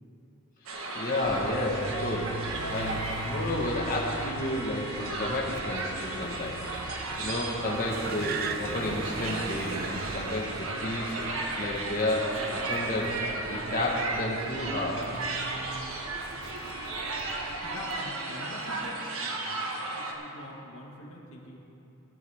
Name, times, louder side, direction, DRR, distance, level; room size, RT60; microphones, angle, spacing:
sound 1, 0.7-20.1, right 2 dB, 80° right, 1.5 m, -35 dB
voice 1, 0.9-13.1 13.5-15.1, left 1 dB, 40° left, -4 dB, 1.4 m, -31 dB
Car, 1.2-18.0, right 4 dB, 45° right, 0.5 m, -40 dB
voice 2, 17.6-21.6, left 1 dB, 75° left, -2 dB, 2.0 m, -45 dB
16.5 x 12.5 x 3.6 m, 2.9 s
head